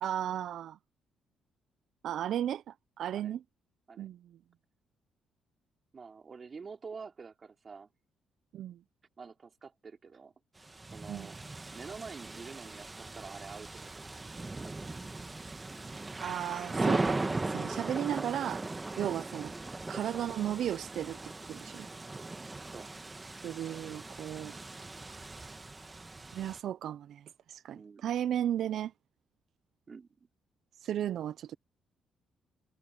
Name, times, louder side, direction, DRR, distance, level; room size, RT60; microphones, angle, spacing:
voice 1, 0.0-0.8 2.0-3.4 4.0-4.4 8.5-8.8 11.1-11.3 16.2-18.6 19.0-19.5 19.9-21.9 23.4-24.5 26.3-28.9 30.8-31.5, right 10 dB, 70° right, 0.5 m, -35 dB
voice 2, 5.9-7.9 9.2-10.3 10.9-11.4 11.7-14.3 14.6-14.7 22.7-22.9 27.7-28.1 29.9-30.1, right 5 dB, 40° right, 3.9 m, -47 dB
sound 1, 10.6-26.6, right 2 dB, 20° right, 1.4 m, -38 dB
cardioid pair, 90°, 0 cm